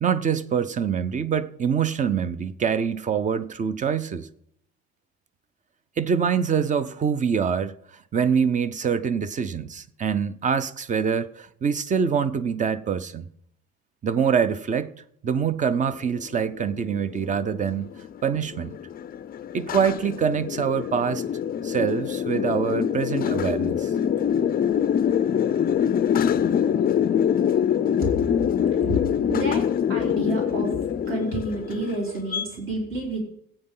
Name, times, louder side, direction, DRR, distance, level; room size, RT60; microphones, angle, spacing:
voice 1, 0.0-4.3 6.0-7.7 8.1-13.3 14.0-14.9 15.2-17.9 18.2-18.8 19.5-21.2 21.6-23.9, right 7 dB, 25° right, 0.5 m, -25 dB
sound 1, 16.1-32.4, left 8 dB, 30° left, 0.4 m, -25 dB
voice 2, 29.3-30.8 31.1-33.2, right 1 dB, 45° right, 3.9 m, -29 dB
16.5 x 8.8 x 3.8 m
cardioid pair, 165°, 30 cm